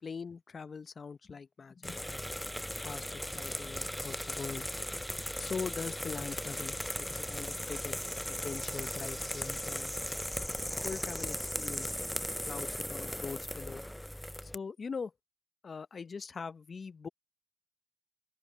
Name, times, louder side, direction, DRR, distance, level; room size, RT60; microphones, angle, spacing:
voice 1, 0.0-2.2 2.8-4.7 5.4-8.0 8.3-9.9 10.8-12.0 12.5-13.8 14.4-15.1 15.6-17.1, left 5 dB, 35° left, 0.8 m, -42 dB
sound 1, 1.8-14.6, equal, 5° left, 0.5 m, -37 dB
open air
supercardioid pair, 70°, 0 cm